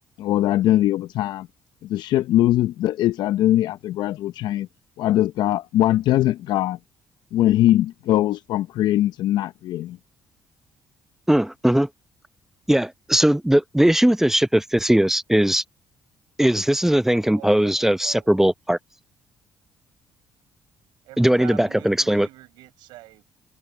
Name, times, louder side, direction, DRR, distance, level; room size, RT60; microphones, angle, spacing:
voice 1, 0.2-1.5 1.8-4.7 5.0-6.8 7.3-10.0, left 13 dB, 75° left, 0.7 m, -21 dB
voice 2, 11.3-11.9 12.7-15.6 16.4-18.8 21.2-22.3, right 1 dB, 5° right, 0.8 m, -19 dB
voice 3, 17.3-18.3 21.0-23.3, right 19 dB, 80° right, 6.4 m, -43 dB
hypercardioid pair, 55°, 8 cm